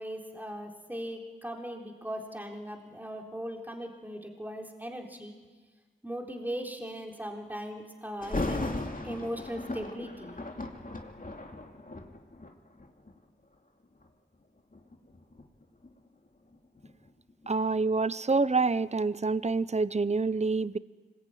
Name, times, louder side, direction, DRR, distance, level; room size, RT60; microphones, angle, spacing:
voice 1, 0.0-5.4 6.0-8.8 9.0-10.4, equal, 10° right, 1 dB, 3.7 m, -39 dB
Thunder, 8.2-13.2 13.8-14.1 14.7-17.5 17.9-18.0, left 2 dB, 45° left, 2.6 m, -37 dB
voice 2, 17.5-20.8, right 3 dB, 35° right, 17 dB, 0.7 m, -27 dB
25.5 x 21.5 x 9.3 m, 1.4 s
wide cardioid pair, 50°, 20 cm